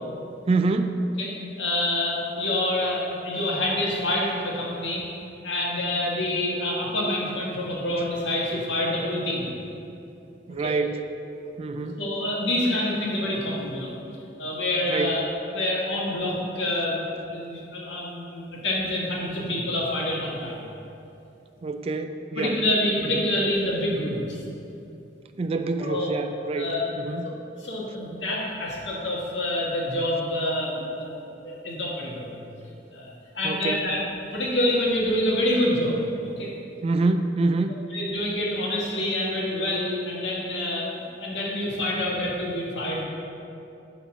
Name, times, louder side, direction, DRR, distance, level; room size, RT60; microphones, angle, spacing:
voice 1, 0.5-1.0 10.5-11.0 11.6-12.0 14.9-15.3 21.6-22.6 23.1-23.3 25.4-27.3 33.4-33.9 36.8-37.8, right 3 dB, 35° right, 8 dB, 0.3 m, -26 dB
voice 2, 1.6-5.0 5.4-9.5 10.6-10.7 11.8-13.9 14.4-15.2 15.5-20.6 22.4-24.4 25.8-26.1 26.6-26.9 27.6-31.2 31.4-32.4 32.9-34.0 34.3-36.5 37.9-40.9 41.2-43.0, left 1 dB, 85° left, -3 dB, 1.7 m, -27 dB
9.2 x 4.1 x 6.1 m, 2.7 s
head